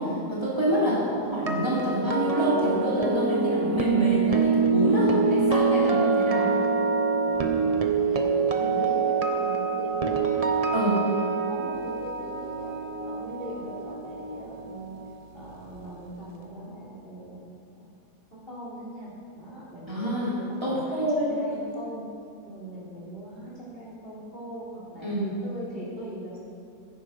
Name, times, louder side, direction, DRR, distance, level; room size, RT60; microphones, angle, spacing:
voice 1, 0.0-0.9 1.3-6.5 10.7-11.0 19.9-21.4 25.0-25.3, equal, 15° right, -8 dB, 2.9 m, -27 dB
voice 2, 0.7-1.6 7.2-12.7 13.0-15.0 15.3-17.4 17.7-17.9 18.3-20.2 20.5-22.1 22.5-26.4, right 1 dB, 35° left, -6 dB, 3.7 m, -40 dB
sound 1, 1.2-15.3 15.6-15.9, right 4 dB, 35° right, 0.6 m, -25 dB
15.5 x 9.7 x 5.4 m, 2.4 s
omnidirectional pair, 1.8 m